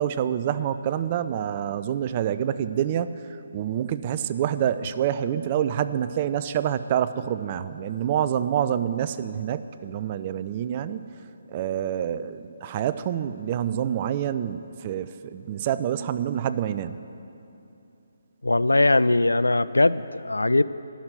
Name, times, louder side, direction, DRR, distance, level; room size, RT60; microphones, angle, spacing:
voice 1, 0.0-3.2 3.5-11.0 11.5-17.0, right 10 dB, 30° right, 13 dB, 0.4 m, -27 dB
voice 2, 18.4-20.6, left 2 dB, 80° left, 16 dB, 0.3 m, -20 dB
11.0 x 6.1 x 9.1 m, 2.8 s
figure-of-eight pair, 145°, 0 cm